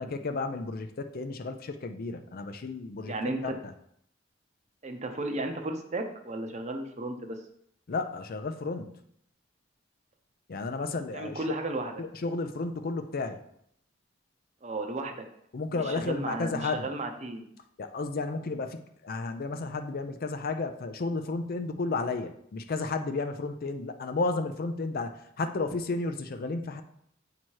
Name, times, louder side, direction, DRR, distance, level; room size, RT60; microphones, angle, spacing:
voice 1, 0.0-3.1 3.4-3.7 7.9-9.0 10.5-11.5 12.0-13.4 15.5-16.9 17.8-26.8, left 3 dB, 50° left, 8 dB, 0.5 m, -32 dB
voice 2, 3.1-3.4 4.8-7.4 11.1-11.9 14.6-15.2 15.7-17.5, right 2 dB, 35° right, 5 dB, 0.7 m, -34 dB
7.5 x 2.9 x 4.6 m, 0.70 s
head